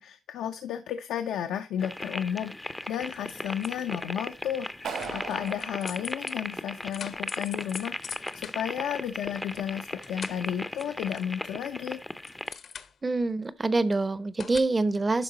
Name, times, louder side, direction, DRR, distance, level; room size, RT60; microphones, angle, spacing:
voice 1, 0.0-12.0, left 9 dB, 85° left, 0.8 m, -33 dB
sound 1, 1.8-12.5, left 1 dB, 10° left, 0.6 m, -37 dB
sound 2, 3.0-4.0 4.9-9.6 9.9-11.5 11.8-13.2 14.4-14.6, left 7 dB, 55° left, 0.9 m, -44 dB
Clapping, 4.8-6.9, right 6 dB, 75° right, 2.8 m, -39 dB
voice 2, 13.0-15.2, right 3 dB, 25° right, 0.8 m, -26 dB
11.5 x 3.9 x 4.0 m
cardioid pair, 100°, 0 cm